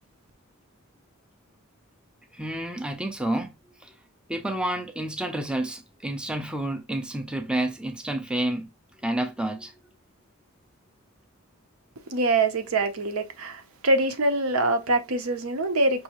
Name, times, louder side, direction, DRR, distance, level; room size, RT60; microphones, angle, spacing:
voice 1, 2.3-3.6 3.8-3.9 4.3-8.7 9.0-9.7, right 1 dB, 5° right, 0.4 m, -29 dB
voice 2, 12.1-16.0, right 2 dB, 85° right, 0.8 m, -24 dB
5.3 x 2.7 x 2.9 m
head